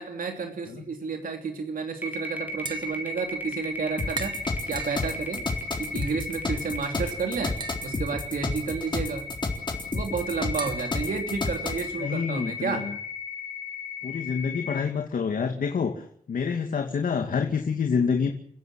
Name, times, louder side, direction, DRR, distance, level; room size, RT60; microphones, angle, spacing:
voice 1, 0.0-5.4 5.8-7.6 7.8-9.3 9.9-12.9, right 5 dB, 80° right, 4 dB, 3.1 m, -31 dB
sound 1, 2.0-14.8, left 2 dB, 10° right, 3.5 m, -36 dB
Tap, 2.5-12.0, right 4 dB, 30° right, 2.0 m, -44 dB
sound 2, 4.0-11.9, left 3 dB, 35° left, 3.6 m, -31 dB
voice 2, 12.0-12.9 14.0-18.3, left 6 dB, 75° left, 4 dB, 2.4 m, -27 dB
30.0 x 16.0 x 7.8 m, 0.63 s
wide cardioid pair, 180°, 14 cm